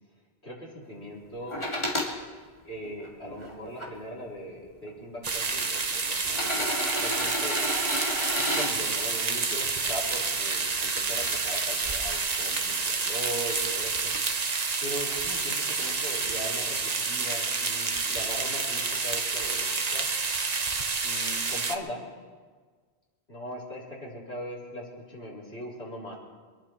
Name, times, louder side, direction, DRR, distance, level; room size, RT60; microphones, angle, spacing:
voice 1, 0.4-1.6 2.6-7.6 8.3-14.0 14.8-20.1 21.0-22.0 23.3-26.1, equal, 85° left, -6 dB, 4.5 m, -39 dB
sound 1, 1.5-2.1 2.8-3.9 4.9-5.0 6.2-8.7 10.6-10.7, left 1 dB, 25° left, 2.1 m, -31 dB
sound 2, 5.2-21.8, right 4 dB, 40° right, 1.0 m, -29 dB
24.0 x 11.5 x 4.6 m, 1.5 s
omnidirectional pair, 1.1 m